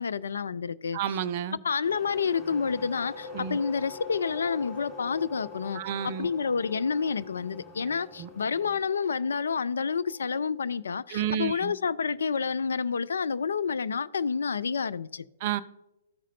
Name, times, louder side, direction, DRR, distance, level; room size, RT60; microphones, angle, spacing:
voice 1, 0.0-1.0 1.6-5.8 6.2-15.3, left 5 dB, 70° left, 0.3 m, -29 dB
voice 2, 0.9-1.6 3.3-3.6 5.7-6.3 8.2-8.3 11.1-11.7 15.4-15.6, right 9 dB, 40° right, 0.4 m, -30 dB
sound 1, 1.8-8.8, left 3 dB, 15° left, 2.8 m, -53 dB
sound 2, 2.0-11.4, left 5 dB, 40° left, 1.4 m, -45 dB
13.5 x 5.0 x 2.7 m
figure-of-eight pair, 125°, 0 cm